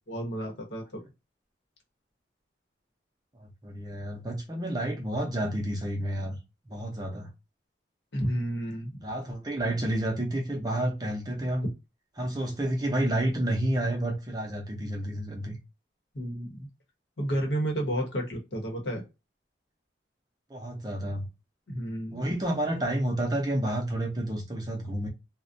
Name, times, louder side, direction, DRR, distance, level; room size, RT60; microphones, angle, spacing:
voice 1, 0.1-1.0 8.1-9.0 16.1-16.7 17.2-19.0 21.7-22.2, right 1 dB, 70° left, 0.9 m, -31 dB
voice 2, 3.3-6.4 6.7-7.3 9.0-11.7 12.2-15.6 20.5-21.3 22.1-25.1, right 1 dB, 20° right, 0.5 m, -30 dB
2.3 x 2.1 x 2.5 m
head